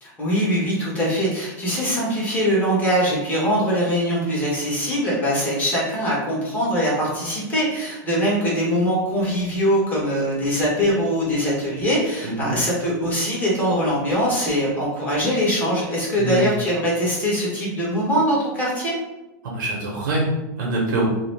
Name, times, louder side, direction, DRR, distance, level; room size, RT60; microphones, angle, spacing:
voice 1, 0.0-18.9, equal, 15° left, -6 dB, 1.2 m, -22 dB
voice 2, 12.2-12.6 16.2-16.5 19.4-21.1, right 1 dB, 85° right, -2 dB, 0.7 m, -24 dB
2.9 x 2.0 x 3.2 m, 1.0 s
supercardioid pair, 140°, 10 cm